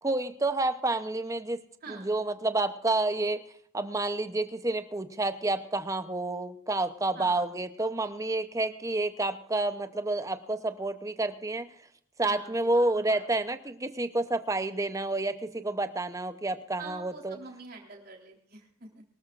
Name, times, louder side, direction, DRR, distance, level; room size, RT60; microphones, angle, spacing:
voice 1, 0.0-1.6 1.9-3.4 3.7-11.7 12.2-17.4, right 2 dB, 15° right, 10 dB, 0.7 m, -29 dB
voice 2, 1.8-2.1 7.2-7.7 12.2-13.3 16.8-19.0, right 3 dB, 45° right, 0 dB, 3.5 m, -46 dB
23.0 x 13.5 x 2.5 m, 0.64 s
head